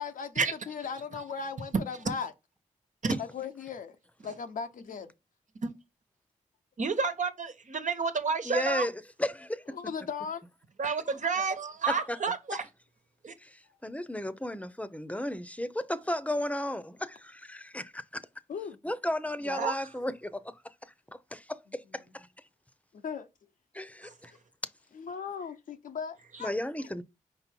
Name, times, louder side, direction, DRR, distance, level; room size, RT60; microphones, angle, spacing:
voice 1, 0.0-2.3 3.2-4.0 4.2-5.1 9.7-10.4 18.5-18.8 21.7-22.1 22.9-23.3 24.9-26.9, left 6 dB, 90° left, 0.8 m, -38 dB
voice 2, 6.8-8.9 10.8-12.7 13.2-13.3 19.5-19.9 24.0-24.1, right 5 dB, 70° right, 1.3 m, -30 dB
voice 3, 8.5-8.9 9.2-9.8 11.9-12.2 13.4-18.2 18.8-20.4 21.1-22.3 23.7-24.3 26.4-27.0, left 1 dB, 10° left, 0.8 m, -34 dB
5.1 x 4.1 x 4.5 m
cardioid pair, 50°, 14 cm